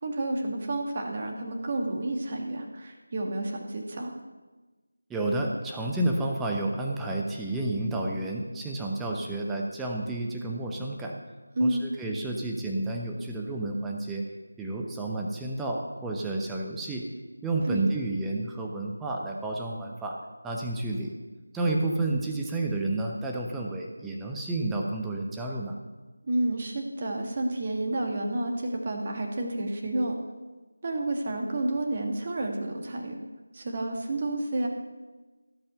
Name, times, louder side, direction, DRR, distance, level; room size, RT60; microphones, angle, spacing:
voice 1, 0.0-4.1 11.5-11.9 17.6-17.9 26.2-30.1 30.8-33.2 33.5-34.7, right 1 dB, 35° right, 2 dB, 1.7 m, -30 dB
voice 2, 5.1-11.1 11.6-14.2 14.6-17.1 17.4-20.1 20.4-21.1 21.5-25.8, right 2 dB, 5° right, -1 dB, 0.8 m, -30 dB
15.5 x 5.6 x 6.8 m, 1.2 s
figure-of-eight pair, 165°, 0 cm